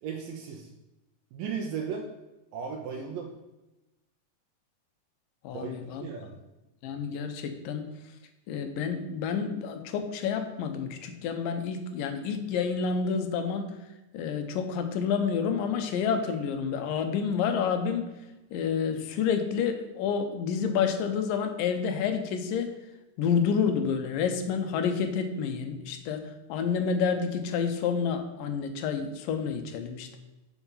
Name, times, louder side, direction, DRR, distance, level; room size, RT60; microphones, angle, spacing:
voice 1, 0.0-0.7 1.3-2.1 2.5-3.3 5.5-6.4, right 6 dB, 85° right, -1 dB, 2.6 m, -36 dB
voice 2, 5.4-6.0 6.8-7.9 8.5-13.7 14.1-18.1 18.5-22.8 23.2-30.2, left 6 dB, 85° left, 7 dB, 2.6 m, -29 dB
7.1 x 6.6 x 5.5 m, 1.0 s
omnidirectional pair, 3.9 m